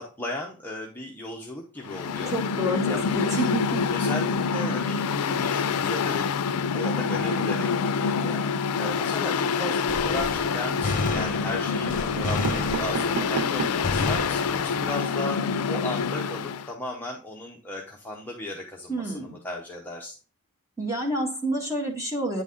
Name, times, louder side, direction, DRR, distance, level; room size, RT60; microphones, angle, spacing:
voice 1, 0.0-2.4 2.9-3.4 3.9-15.4 15.7-20.2, left 1 dB, 10° left, -2 dB, 0.7 m, -36 dB
Mechanical fan, 1.8-16.7, left 5 dB, 80° left, 0.4 m, -26 dB
voice 2, 2.3-3.8 18.9-19.4 20.8-22.4, right 1 dB, 15° right, 0 dB, 1.7 m, -29 dB
Gunshot gunfire, 9.9-13.4 13.8-14.9, left 3 dB, 35° left, 1.0 m, -31 dB
sound 1, 10.5-11.1 11.8-11.9 12.2-14.0 14.5-14.6 14.8-14.9 15.1-15.3, right 7 dB, 75° right, 0.3 m, -34 dB
9.0 x 4.0 x 3.6 m, 0.37 s
head